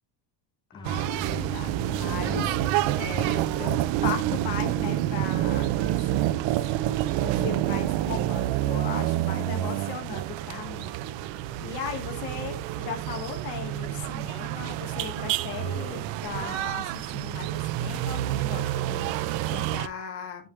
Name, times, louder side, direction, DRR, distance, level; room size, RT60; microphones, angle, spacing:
voice 1, 0.7-6.7 7.2-10.9 11.6-20.5, left 7 dB, 60° left, 4 dB, 1.7 m, -37 dB
sound 1, 0.7-6.2, left 1 dB, 10° left, 0.6 m, -43 dB
sound 2, 0.8-19.9, right 14 dB, 85° right, 0.7 m, -28 dB
8.9 x 5.2 x 3.2 m, 0.34 s
cardioid pair, 155°, 45 cm